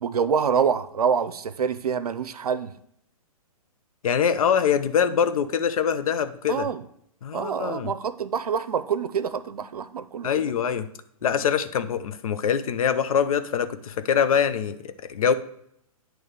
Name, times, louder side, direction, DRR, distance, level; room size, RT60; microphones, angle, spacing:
voice 1, 0.0-2.7 6.5-6.8 7.3-10.5, right 7 dB, 85° right, 12 dB, 0.6 m, -26 dB
voice 2, 4.0-6.7 7.2-7.9 10.2-10.9 11.2-15.3, left 7 dB, 70° left, 12 dB, 0.7 m, -24 dB
9.1 x 3.1 x 6.5 m, 0.73 s
hypercardioid pair, 135°, 19 cm